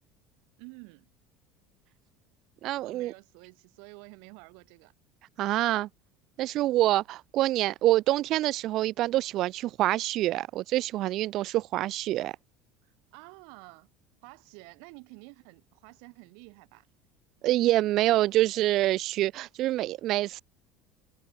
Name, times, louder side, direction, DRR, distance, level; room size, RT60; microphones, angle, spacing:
voice 1, 0.6-1.1 2.8-4.9 12.8-13.9 14.2-16.8, right 40 dB or more, 75° right, 2.6 m, -50 dB
voice 2, 2.6-3.1 5.4-5.9 6.4-12.3 17.4-20.4, right 15 dB, 55° right, 0.7 m, -26 dB
supercardioid pair, 120°, 0 cm